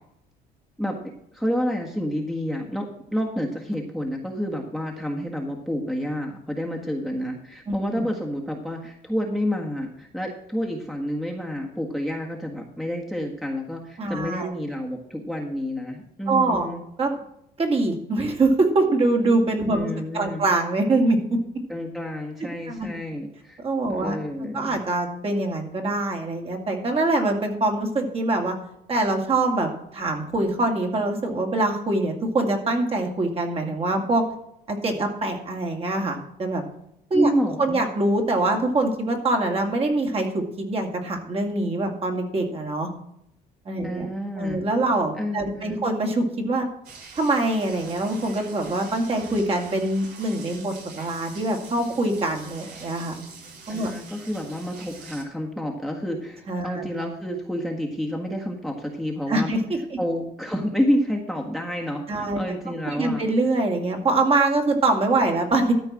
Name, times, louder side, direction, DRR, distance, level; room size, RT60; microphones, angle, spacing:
voice 1, 0.8-16.8 19.7-20.4 21.7-23.6 23.9-24.8 37.1-37.8 43.8-44.7 45.2-45.9 53.7-59.5 60.0-63.2, equal, ahead, 1 dB, 1.6 m, -29 dB
voice 2, 14.0-14.5 16.3-16.7 17.0-17.1 17.6-21.2 22.7-22.9 23.6-24.2 24.5-28.5 28.9-34.3 34.7-36.6 37.1-37.3 37.6-42.9 43.7-44.1 44.4-46.7 47.2-53.2 53.7-53.9 56.5-56.9 59.3-60.0 62.1-62.4 62.9-65.7, right 2 dB, 35° right, 2 dB, 2.5 m, -24 dB
sound 1, 46.8-55.2, right 4 dB, 70° right, 2.6 m, -44 dB
13.5 x 4.6 x 7.5 m, 0.77 s
cardioid pair, 110°, 17 cm